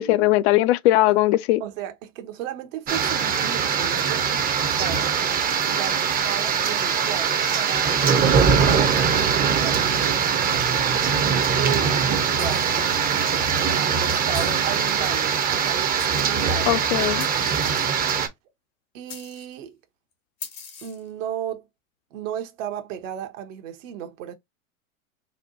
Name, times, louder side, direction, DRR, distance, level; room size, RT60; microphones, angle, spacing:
voice 1, 0.0-1.6 16.7-17.3, left 16 dB, 50° left, 0.5 m, -19 dB
voice 2, 1.6-5.3 5.7-10.7 11.1-12.9 13.8-16.8 18.9-19.8 20.8-21.7 22.1-24.3, right 10 dB, 65° right, 0.9 m, -35 dB
sound 1, 2.9-18.3, right 7 dB, 20° right, 0.6 m, -22 dB
sound 2, 12.4-12.9 14.3-14.7 15.6-15.7 16.0-16.6 17.2-18.1 19.1-19.6 20.4-21.1, left 6 dB, 85° left, 2.1 m, -41 dB
4.2 x 2.2 x 2.6 m
hypercardioid pair, 110°, 42 cm